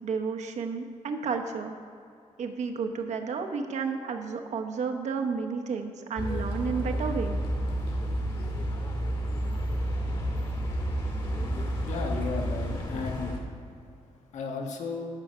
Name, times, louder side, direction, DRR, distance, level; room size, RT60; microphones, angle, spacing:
voice 1, 0.0-1.8 2.4-7.4, right 5 dB, 65° right, 4 dB, 1.0 m, -32 dB
sound 1, 6.2-13.4, equal, 40° left, 1.8 m, -30 dB
voice 2, 11.8-13.3 14.3-15.1, left 4 dB, 70° left, 2 dB, 1.4 m, -34 dB
13.5 x 6.3 x 5.5 m, 2.4 s
wide cardioid pair, 165°, 13 cm